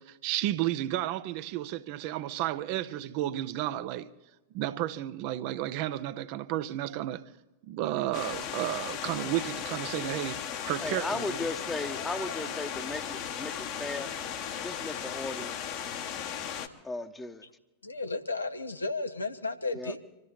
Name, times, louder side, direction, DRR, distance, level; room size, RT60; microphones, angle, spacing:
voice 1, 0.0-4.1 4.5-7.2 7.6-11.4, right 13 dB, 45° right, 0.7 m, -32 dB
sound 1, 8.1-16.7, left 8 dB, 40° left, 1.1 m, -36 dB
voice 2, 10.8-15.5 16.8-17.4 19.7-19.9, left 2 dB, 10° left, 1.0 m, -36 dB
voice 3, 17.8-20.0, left 3 dB, 80° left, 0.9 m, -33 dB
25.5 x 13.5 x 4.0 m
figure-of-eight pair, 90°, 0 cm